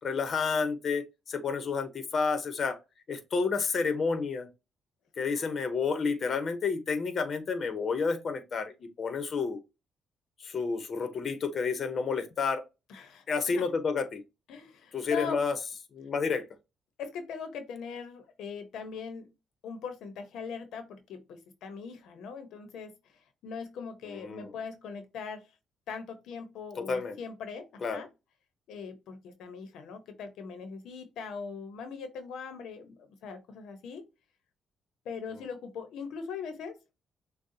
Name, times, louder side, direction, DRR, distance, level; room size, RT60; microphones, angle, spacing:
voice 1, 0.0-2.8 3.1-4.5 5.2-9.6 10.4-12.6 13.3-14.2 14.9-15.6 15.9-16.5 24.1-24.5 26.8-27.1 27.8-28.0, left 5 dB, 50° left, 1.0 m, -30 dB
voice 2, 12.9-13.2 14.5-15.4 17.0-19.3 19.6-25.5 25.9-28.1 28.7-34.0 35.0-36.8, left 5 dB, 80° left, 0.9 m, -41 dB
6.4 x 2.3 x 2.8 m
cardioid pair, 90°, 0 cm